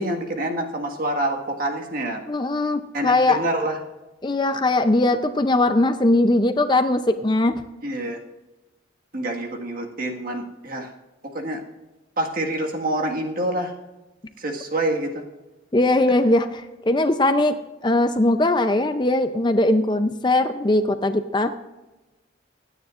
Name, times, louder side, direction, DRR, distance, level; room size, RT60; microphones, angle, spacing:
voice 1, 0.0-2.2 2.9-3.8 7.8-8.2 9.1-10.9 11.2-11.6 12.2-13.7 14.4-15.3, right 1 dB, 45° right, 2 dB, 1.7 m, -27 dB
voice 2, 2.3-3.4 4.2-7.6 15.7-17.6 17.8-21.5, left 2 dB, 25° left, 8 dB, 0.5 m, -20 dB
25.0 x 9.6 x 2.5 m, 1.1 s
head